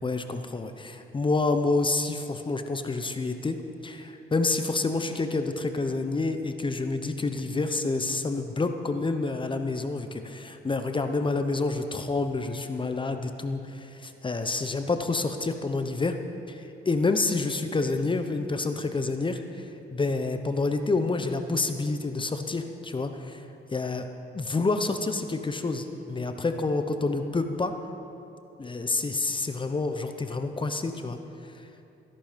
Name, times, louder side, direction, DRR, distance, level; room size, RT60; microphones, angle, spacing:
voice 1, 0.0-3.6 3.8-16.2 16.5-19.6 19.9-23.4 23.7-24.1 24.3-27.7 28.6-31.2, left 3 dB, 25° left, 7 dB, 0.9 m, -28 dB
16.0 x 11.0 x 5.2 m, 2.8 s
cardioid pair, 90°, 20 cm